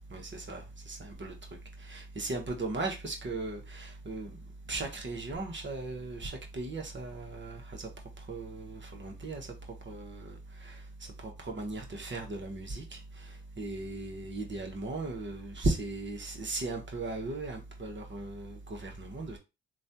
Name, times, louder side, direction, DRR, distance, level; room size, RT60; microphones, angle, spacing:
voice 1, 0.0-1.3 1.8-4.3 4.7-7.9 8.3-9.5 9.9-10.8 11.2-13.0 13.6-19.4, right 2 dB, 35° right, 1.1 m, -37 dB
3.1 x 2.3 x 2.7 m
supercardioid pair, 55°, 34 cm